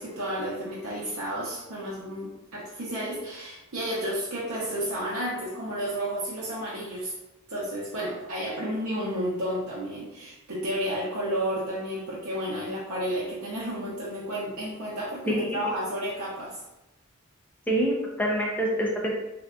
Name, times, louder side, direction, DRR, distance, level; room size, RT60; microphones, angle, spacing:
voice 1, 0.0-7.1 7.5-16.6, equal, 90° right, -7 dB, 0.7 m, -32 dB
voice 2, 15.3-15.6 17.7-19.2, equal, 10° left, -2 dB, 0.5 m, -26 dB
3.7 x 2.6 x 2.3 m, 0.96 s
head